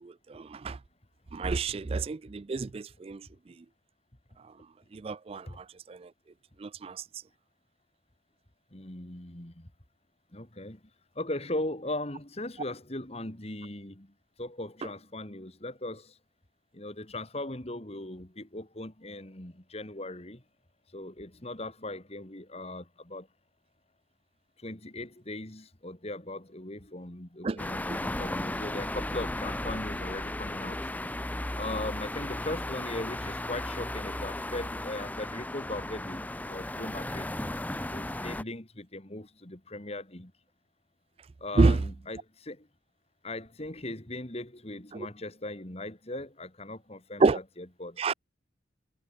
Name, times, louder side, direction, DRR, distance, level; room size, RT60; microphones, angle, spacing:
voice 1, 0.3-0.8 1.3-3.2 5.0-5.6 6.6-7.0 27.4-27.6 41.6-41.8 47.2-47.4 48.0-48.1, right 3 dB, 30° right, 0.3 m, -27 dB
voice 2, 8.7-9.7 10.3-10.8 11.1-16.2 16.7-20.4 20.9-23.3 24.6-30.8 31.6-37.3 37.9-40.3 41.4-42.7 43.2-48.1, left 1 dB, 30° left, 2.5 m, -39 dB
sound 1, 27.6-38.4, left 1 dB, 10° left, 0.6 m, -35 dB
head